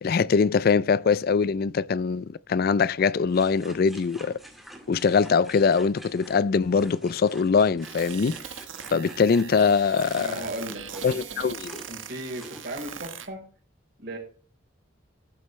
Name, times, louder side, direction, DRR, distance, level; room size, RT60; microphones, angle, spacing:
voice 1, 0.0-4.4 4.9-8.4 8.9-10.3 11.0-11.8, left 5 dB, 50° left, 0.4 m, -22 dB
sound 1, 3.3-13.0, right 1 dB, ahead, 2.0 m, -48 dB
sound 2, 7.8-13.3, right 8 dB, 85° right, 1.3 m, -40 dB
voice 2, 10.2-11.5 11.9-13.4 14.0-14.2, right 1 dB, 55° right, 4.0 m, -36 dB
12.5 x 10.0 x 3.2 m
head